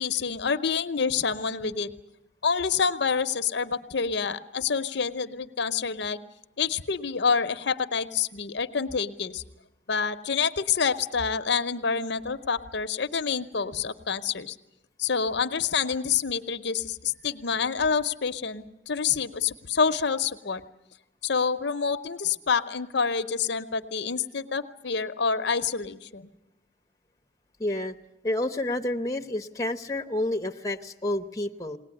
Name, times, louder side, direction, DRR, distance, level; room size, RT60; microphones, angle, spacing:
voice 1, 0.0-1.9 2.4-6.2 6.6-9.4 9.9-14.6 15.0-20.6 21.2-26.3, left 6 dB, 55° left, 10 dB, 0.7 m, -27 dB
voice 2, 27.6-27.9 28.2-31.8, left 1 dB, 15° left, 4 dB, 0.8 m, -29 dB
21.0 x 18.5 x 9.7 m, 0.90 s
head